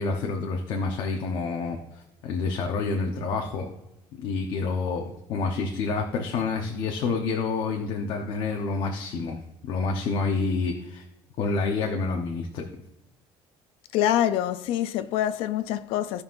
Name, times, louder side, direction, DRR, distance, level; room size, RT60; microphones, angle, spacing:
voice 1, 0.0-3.7 4.2-11.1 11.4-12.7, left 4 dB, 55° left, 1.0 m, -28 dB
voice 2, 13.9-16.2, left 11 dB, 75° left, 0.6 m, -25 dB
16.0 x 5.6 x 2.6 m
cardioid pair, 170°, 10 cm